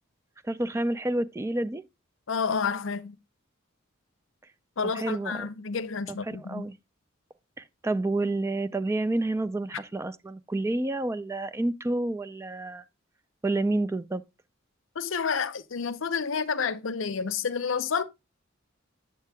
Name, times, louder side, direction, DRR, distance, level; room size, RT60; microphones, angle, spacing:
voice 1, 0.4-1.8 4.9-5.5 6.1-6.8 7.6-12.8 13.4-14.2, right 2 dB, 15° right, 0.3 m, -29 dB
voice 2, 2.3-3.2 4.8-6.7 15.0-18.0, left 5 dB, 65° left, 0.6 m, -29 dB
8.9 x 7.4 x 2.2 m
head